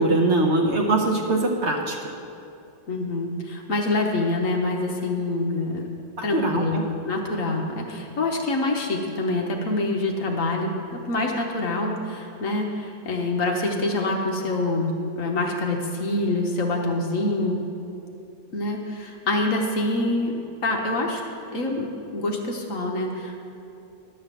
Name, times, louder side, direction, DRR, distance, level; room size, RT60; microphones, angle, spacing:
voice 1, 0.0-2.0 6.2-6.8, right 2 dB, 50° right, 0 dB, 0.9 m, -22 dB
voice 2, 2.9-5.9 6.2-6.8 7.0-10.7 11.0-17.6 18.5-23.4, left 2 dB, 50° left, 1 dB, 1.2 m, -26 dB
11.5 x 5.6 x 8.1 m, 2.8 s
omnidirectional pair, 2.1 m